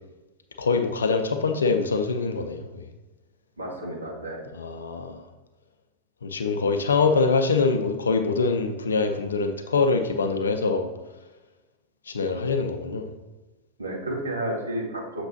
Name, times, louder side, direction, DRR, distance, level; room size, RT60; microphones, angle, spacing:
voice 1, 0.6-2.9 4.5-5.2 6.2-10.9 12.1-13.1, left 4 dB, 70° left, 7 dB, 0.6 m, -24 dB
voice 2, 3.6-4.4 13.8-15.2, right 1 dB, 75° right, -2 dB, 1.9 m, -31 dB
7.9 x 5.9 x 2.8 m, 1.1 s
figure-of-eight pair, 90°, 0 cm